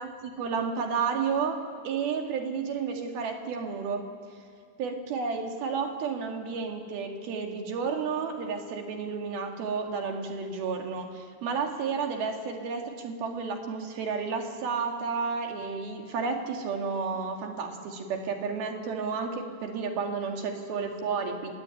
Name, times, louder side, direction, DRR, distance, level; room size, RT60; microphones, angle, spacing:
voice 1, 0.0-4.1 4.8-21.5, right 5 dB, 55° right, 3 dB, 3.5 m, -31 dB
28.0 x 20.5 x 9.0 m, 2.1 s
omnidirectional pair, 5.7 m